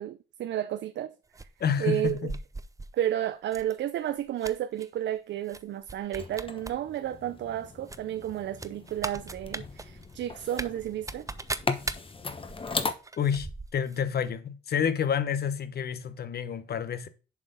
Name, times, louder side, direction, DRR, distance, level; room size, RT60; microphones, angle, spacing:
voice 1, 0.0-1.4 1.8-2.3 2.9-11.3, right 11 dB, 65° right, 0.5 m, -32 dB
sound 1, 1.3-2.9 3.5-3.7 4.1-4.9 5.5-5.6 5.9-6.7 7.0-7.1 7.9-14.0 14.3-14.4, right 3 dB, 15° right, 0.7 m, -39 dB
voice 2, 1.6-2.3 13.2-17.1, left 7 dB, 55° left, 1.0 m, -29 dB
sound 2, 6.2-12.9, left 4 dB, 25° left, 1.0 m, -37 dB
7.3 x 4.4 x 5.3 m
cardioid pair, 90°, 20 cm